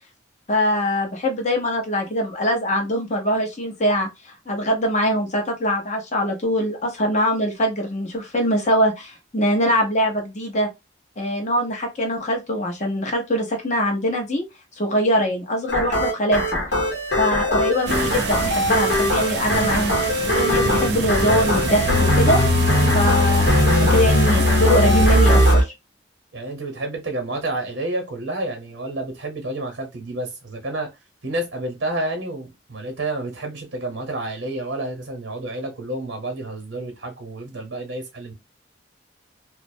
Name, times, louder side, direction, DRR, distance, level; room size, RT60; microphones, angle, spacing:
voice 1, 0.5-4.1 4.5-10.7 11.2-14.4 14.8-16.6 17.2-22.6 22.9-25.7, equal, 40° left, 0.8 m, -22 dB
sound 1, 15.7-25.6, left 1 dB, 65° left, 1.1 m, -19 dB
sound 2, 17.9-25.6, right 3 dB, 65° right, 0.4 m, -26 dB
voice 2, 26.3-30.9 31.2-38.3, right 2 dB, 85° right, 0.8 m, -29 dB
2.4 x 2.0 x 2.5 m
head